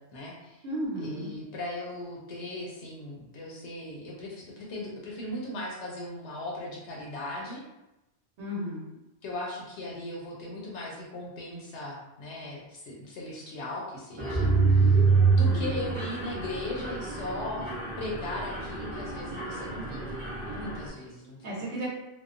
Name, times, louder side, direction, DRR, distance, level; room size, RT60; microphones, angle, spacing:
voice 1, 0.0-0.6 1.0-7.6 9.2-17.7 18.0-20.2 20.5-21.5, left 1 dB, 75° left, -3 dB, 0.9 m, -38 dB
voice 2, 0.6-1.3 8.4-8.9 15.5-15.8 21.4-21.9, equal, 75° right, -6 dB, 1.0 m, -34 dB
Mechanisms, 14.2-20.9, right 4 dB, 45° right, 0.4 m, -26 dB
2.7 x 2.1 x 2.4 m, 0.95 s
omnidirectional pair, 1.2 m